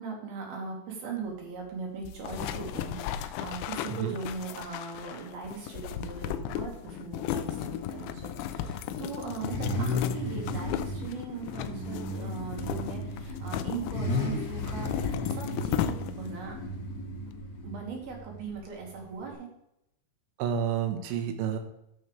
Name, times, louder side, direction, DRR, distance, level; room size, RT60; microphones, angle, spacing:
voice 1, 0.0-14.9 15.3-16.5 17.6-19.5, right 5 dB, 60° right, 0 dB, 3.1 m, -39 dB
sound 1, 2.0-16.4, left 10 dB, 85° left, 2.5 m, -35 dB
Car / Idling / Accelerating revving vroom, 7.2-19.3, left 1 dB, 55° left, 3.2 m, -35 dB
voice 2, 20.4-21.6, right 8 dB, 80° right, 6 dB, 3.5 m, -30 dB
14.0 x 6.7 x 3.3 m, 0.82 s
omnidirectional pair, 5.7 m